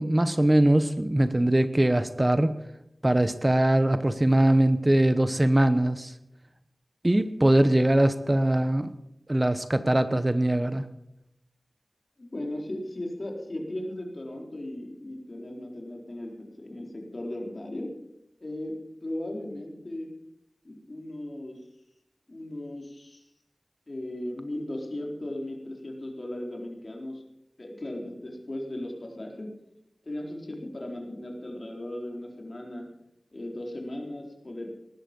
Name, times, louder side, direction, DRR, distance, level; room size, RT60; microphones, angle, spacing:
voice 1, 0.0-2.6 3.0-6.1 7.0-8.9 9.3-10.8, right 1 dB, 25° right, 11 dB, 0.9 m, -22 dB
voice 2, 12.2-17.9 18.4-20.1 20.6-21.6 22.3-23.2 23.9-27.2 27.6-29.5 30.0-32.9 33.3-34.7, left 1 dB, 50° left, 1 dB, 4.2 m, -37 dB
19.5 x 14.0 x 5.3 m, 0.81 s
wide cardioid pair, 55°, 0 cm